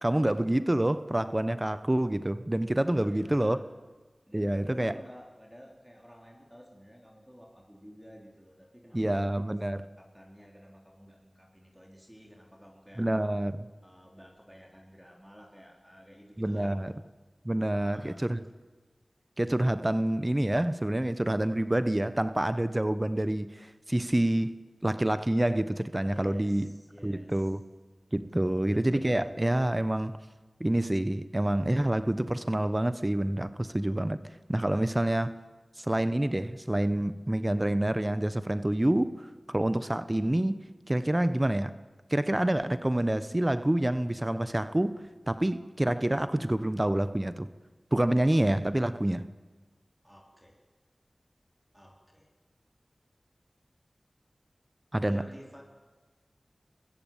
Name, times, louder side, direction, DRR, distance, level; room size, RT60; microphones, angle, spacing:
voice 1, 0.0-3.6 4.3-4.9 8.9-9.8 13.0-13.7 16.4-16.9 17.4-18.4 19.4-24.5 24.8-26.7 27.0-27.6 28.1-30.2 30.6-34.2 34.5-35.3 35.8-41.7 42.1-45.0 45.3-47.5 47.9-49.2 54.9-55.2, right 1 dB, 25° right, 1.1 m, -27 dB
voice 2, 2.9-3.7 4.3-13.1 13.8-16.8 17.7-18.4 26.1-27.5 28.3-28.8 50.0-50.6 51.7-52.3 55.1-55.6, equal, 5° right, 4.5 m, -52 dB
23.5 x 20.5 x 9.1 m
wide cardioid pair, 55°, 0 cm